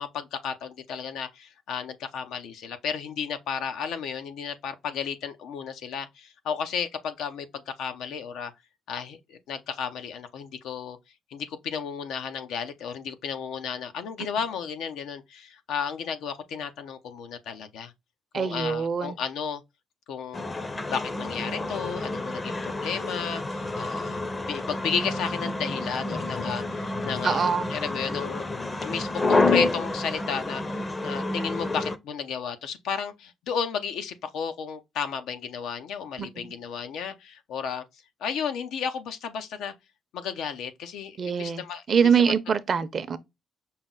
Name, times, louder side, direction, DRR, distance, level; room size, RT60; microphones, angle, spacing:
voice 1, 0.0-8.5 8.9-11.0 11.3-17.9 18.3-19.6 20.1-20.6 20.9-28.5 28.8-37.8 38.2-39.7 40.1-42.3, left 7 dB, 85° left, 0.7 m, -33 dB
voice 2, 18.3-19.2 27.2-27.7 36.2-36.5 41.2-41.6 41.9-43.2, right 6 dB, 45° right, 0.6 m, -24 dB
sound 1, 20.3-32.0, left 2 dB, 25° left, 0.6 m, -29 dB
5.6 x 2.0 x 3.7 m
cardioid pair, 90°, 0 cm